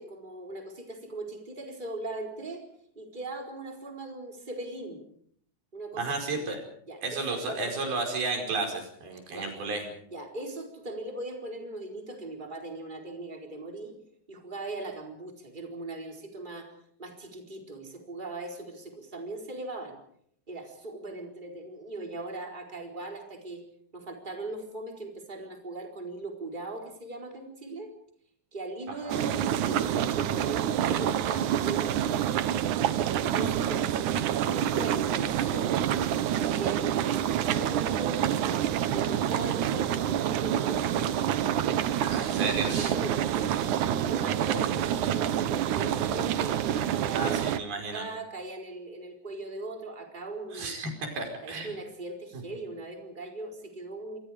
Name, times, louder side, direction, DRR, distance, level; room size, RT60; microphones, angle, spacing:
voice 1, 0.0-2.6 3.0-5.0 5.7-6.4 6.9-7.8 9.3-9.5 10.1-13.9 14.3-16.7 17.0-20.0 20.5-23.6 23.9-27.9 28.5-32.3 33.2-35.9 36.6-41.1 42.6-43.6 44.0-47.4 47.9-50.9 51.4-54.2, right 2 dB, 10° right, 2 dB, 4.2 m, -39 dB
voice 2, 6.0-6.6 7.0-9.9 29.0-29.2 42.0-43.0 47.1-48.0 50.5-51.7, right 3 dB, 80° right, 3 dB, 6.9 m, -32 dB
sound 1, 29.1-47.6, right 10 dB, 65° right, 2.2 m, -27 dB
28.0 x 24.5 x 5.1 m, 0.66 s
omnidirectional pair, 4.2 m